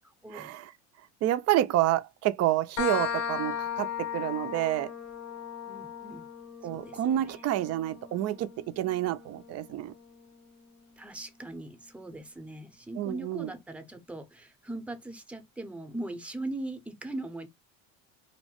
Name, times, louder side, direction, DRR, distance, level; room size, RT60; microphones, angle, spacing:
voice 1, 0.3-0.7 1.2-4.9 6.6-9.9 13.0-13.5, right 13 dB, 40° right, 0.4 m, -29 dB
sound 1, 2.8-10.2, left 7 dB, 80° left, 1.0 m, -37 dB
voice 2, 5.7-6.3 6.7-7.4 11.0-17.5, right 2 dB, 5° right, 0.6 m, -40 dB
2.8 x 2.1 x 2.8 m
supercardioid pair, 90°, 40 cm